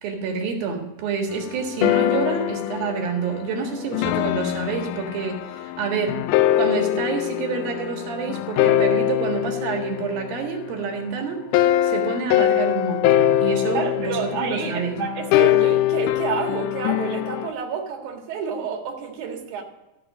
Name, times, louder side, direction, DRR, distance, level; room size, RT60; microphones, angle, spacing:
voice 1, 0.0-6.2 6.6-11.4 11.8-15.0, right 5 dB, 80° right, 3 dB, 3.5 m, -28 dB
sound 1, 1.3-11.0 11.5-17.5, left 12 dB, 85° left, 1.8 m, -23 dB
voice 2, 13.7-19.6, right 6 dB, 60° right, 1 dB, 3.0 m, -29 dB
14.5 x 6.0 x 6.1 m, 0.97 s
omnidirectional pair, 4.1 m